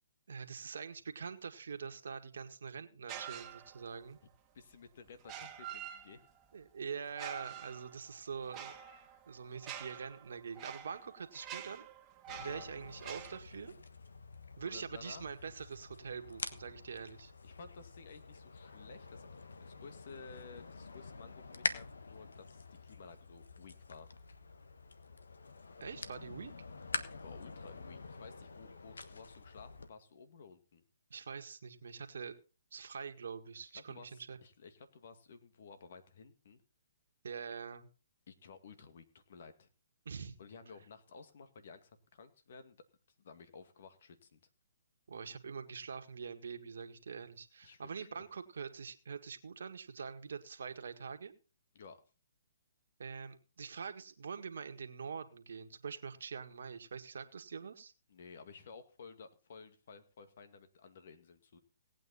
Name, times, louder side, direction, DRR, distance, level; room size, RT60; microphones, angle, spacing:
voice 1, 0.3-4.2 6.5-8.7 9.3-11.8 12.4-13.7 14.6-17.3 25.8-26.5 31.1-32.4 32.7-34.4 37.2-37.9 40.0-40.4 45.1-51.3 53.0-57.9, right 6 dB, 70° right, 7 dB, 1.7 m, -44 dB
sound 1, 3.1-4.0 5.2-6.5 7.1-13.4, right 9 dB, 20° right, 1.5 m, -47 dB
voice 2, 4.5-6.3 12.4-12.7 14.7-15.3 17.4-24.1 27.1-30.8 32.9-33.0 33.7-36.6 38.3-39.7 40.4-42.8 43.2-44.4 47.6-48.2 51.7-52.0 58.1-61.6, left 5 dB, 60° left, 9 dB, 2.1 m, -54 dB
sound 2, 12.3-29.9, left 4 dB, 85° left, 1.3 m, -46 dB
18.0 x 8.9 x 4.2 m, 0.35 s
hypercardioid pair, 140°, 0 cm